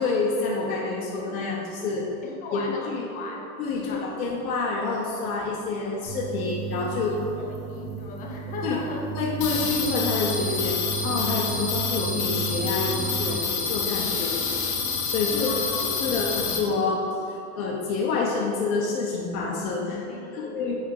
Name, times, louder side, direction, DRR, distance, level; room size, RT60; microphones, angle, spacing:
voice 1, 0.0-2.1 2.5-3.1 3.6-7.2 8.6-8.8 9.1-14.3 15.1-15.5 16.0-20.1 20.3-20.7, left 4 dB, 80° left, -4 dB, 1.2 m, -28 dB
voice 2, 2.2-3.5 3.8-4.1 7.1-9.1 15.4-16.3 20.1-20.7, left 3 dB, 20° left, 1 dB, 0.6 m, -37 dB
sound 1, 6.1-13.3, right 7 dB, 35° right, 1.5 m, -34 dB
sound 2, 9.4-16.6, left 5 dB, 45° left, 1.2 m, -28 dB
9.4 x 3.7 x 4.9 m, 2.9 s
supercardioid pair, 160°, 44 cm